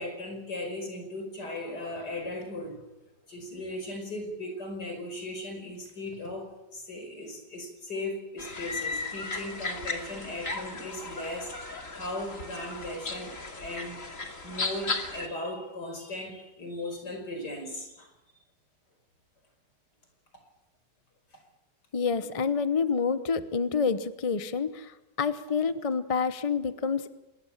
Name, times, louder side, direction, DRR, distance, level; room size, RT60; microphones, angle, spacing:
voice 1, 0.0-2.8 3.3-14.0 14.4-18.1, left 1 dB, 70° left, 5 dB, 5.9 m, -37 dB
sound 1, 8.4-15.3, left 3 dB, 45° left, 3.1 m, -36 dB
voice 2, 21.9-27.1, left 5 dB, 25° left, 11 dB, 0.8 m, -28 dB
26.5 x 21.5 x 7.3 m, 0.95 s
omnidirectional pair, 1.9 m